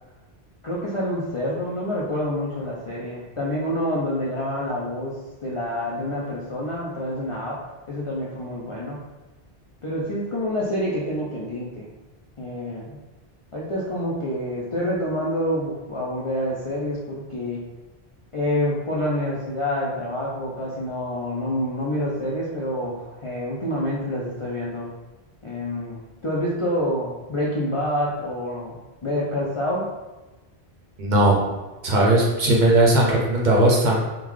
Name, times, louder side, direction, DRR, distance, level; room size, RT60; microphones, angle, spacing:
voice 1, 0.6-7.6 7.9-9.0 9.8-11.9 12.4-13.0 13.5-17.6 18.3-24.9 25.4-29.9, left 1 dB, 45° left, -6 dB, 0.4 m, -27 dB
voice 2, 31.0-31.4 31.8-34.0, right 1 dB, 50° right, -2 dB, 0.7 m, -18 dB
3.6 x 2.3 x 3.1 m, 1.1 s
omnidirectional pair, 1.1 m